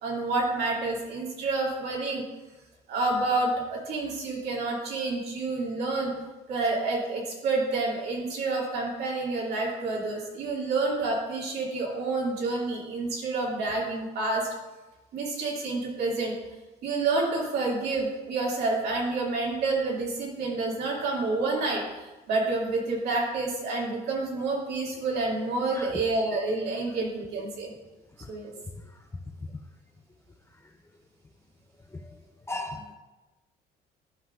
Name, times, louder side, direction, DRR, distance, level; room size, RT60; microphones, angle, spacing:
voice 1, 0.0-2.2 2.9-6.1 6.5-14.5 15.1-16.3 16.8-27.7 28.3-28.5, right 3 dB, 75° right, -3 dB, 2.4 m, -29 dB
voice 2, 31.9-32.9, left 2 dB, 15° left, 5 dB, 0.6 m, -38 dB
12.5 x 5.6 x 2.5 m, 1.1 s
cardioid pair, 110°, 17 cm